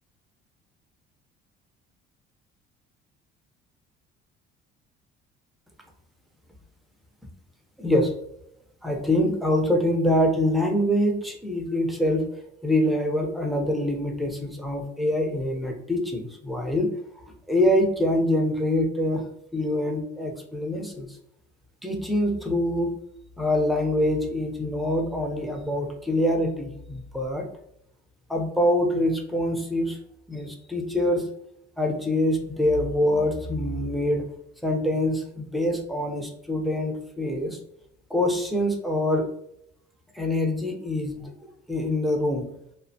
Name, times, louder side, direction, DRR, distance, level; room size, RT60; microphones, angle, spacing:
voice 1, 7.8-8.1 8.8-12.3 12.6-16.9 17.2-19.3 19.5-21.1 21.8-22.9 23.4-27.5 28.3-30.0 30.3-31.3 31.8-34.2 34.6-37.6 38.1-39.2 40.1-41.3 41.7-42.5, left 1 dB, ahead, 1 dB, 0.4 m, -25 dB
2.8 x 2.1 x 2.6 m, 0.74 s
cardioid pair, 140°, 19 cm